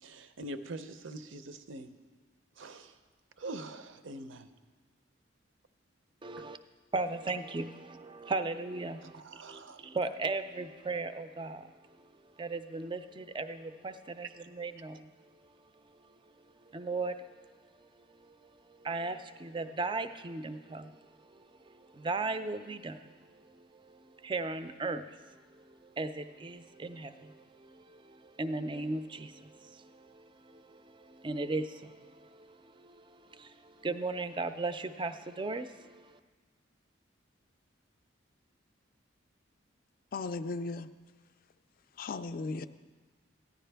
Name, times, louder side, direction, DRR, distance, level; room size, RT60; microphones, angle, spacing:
voice 1, 0.0-1.9 2.6-2.9 3.4-4.5 9.0-9.8 14.2-14.3, right 2 dB, 75° right, 11 dB, 0.6 m, -44 dB
voice 2, 6.2-6.6 6.9-11.7 12.4-15.1 16.6-17.3 18.3-18.5 18.8-25.4 25.7-36.2, right 3 dB, 25° right, 10 dB, 0.4 m, -37 dB
voice 3, 40.1-40.9 42.0-42.7, left 3 dB, 45° left, 12 dB, 0.3 m, -36 dB
14.5 x 10.5 x 3.4 m, 1.4 s
head